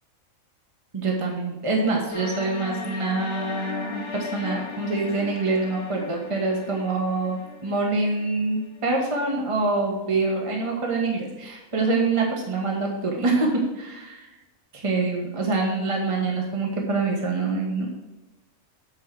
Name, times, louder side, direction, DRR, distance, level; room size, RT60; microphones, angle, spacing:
voice 1, 0.9-14.3 14.7-17.9, right 3 dB, 25° right, 0 dB, 1.4 m, -25 dB
sound 1, 2.1-9.1, left 4 dB, 55° left, 1.0 m, -37 dB
8.2 x 4.6 x 6.1 m, 1.1 s
omnidirectional pair, 1.4 m